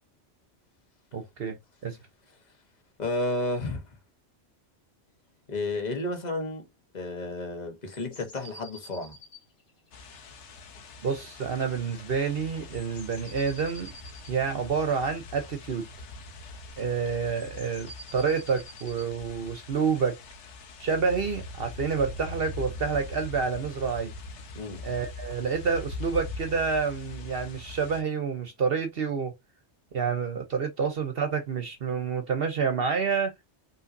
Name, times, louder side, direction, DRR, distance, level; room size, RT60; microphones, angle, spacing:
voice 1, 1.1-1.6 1.8-2.0 11.0-13.9 14.3-15.9 16.8-20.2 20.8-24.1 24.8-29.3 29.9-33.3, right 5 dB, 55° right, 1.0 m, -28 dB
voice 2, 3.0-3.8 5.5-6.6 6.9-9.2 24.5-24.8, left 2 dB, 40° left, 1.3 m, -31 dB
sound 1, 7.8-10.6 12.7-14.4 17.3-19.1, equal, 60° left, 1.8 m, -49 dB
sound 2, 9.9-28.0, left 2 dB, 75° left, 1.2 m, -42 dB
5.4 x 3.1 x 2.6 m
omnidirectional pair, 1.2 m